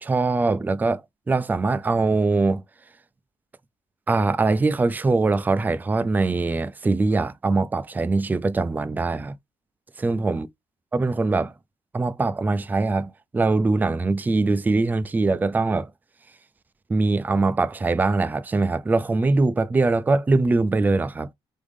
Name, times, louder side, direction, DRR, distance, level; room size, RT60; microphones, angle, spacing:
voice 1, 0.0-1.0 1.3-2.6 4.1-9.3 10.0-10.5 10.9-11.5 11.9-15.9 16.9-21.3, right 3 dB, 15° right, 0.4 m, -22 dB
3.6 x 3.6 x 3.3 m
cardioid pair, 115°, 10 cm